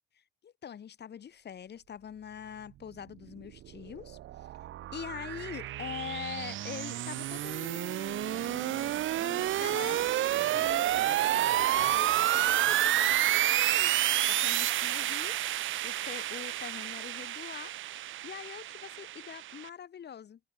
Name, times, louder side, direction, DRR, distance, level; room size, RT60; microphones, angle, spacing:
voice 1, 0.4-4.2 4.9-8.9 9.2-10.1 10.5-13.9 14.2-15.4 15.8-17.7 18.2-20.4, left 8 dB, 55° left, 6.9 m, -43 dB
sound 1, 3.6-19.7, right 13 dB, 80° right, 2.1 m, -30 dB
open air
cardioid pair, 90°, 20 cm